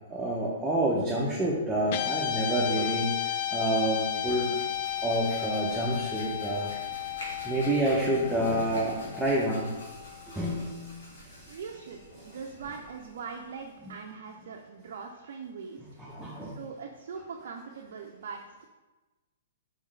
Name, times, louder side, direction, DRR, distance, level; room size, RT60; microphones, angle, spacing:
voice 1, 0.1-4.5 5.0-6.7 7.4-9.9 10.3-10.8 16.0-16.6, right 1 dB, 10° right, -5 dB, 0.8 m, -28 dB
Guitar, 1.9-10.4, left 11 dB, 50° left, 0.3 m, -34 dB
Hands, 2.6-14.0, left 1 dB, 75° left, 1.5 m, -49 dB
voice 2, 11.5-12.0 12.2-15.8 16.4-18.6, right 5 dB, 65° right, 1 dB, 0.4 m, -41 dB
4.5 x 3.6 x 3.2 m, 1.2 s
hypercardioid pair, 125°, 0 cm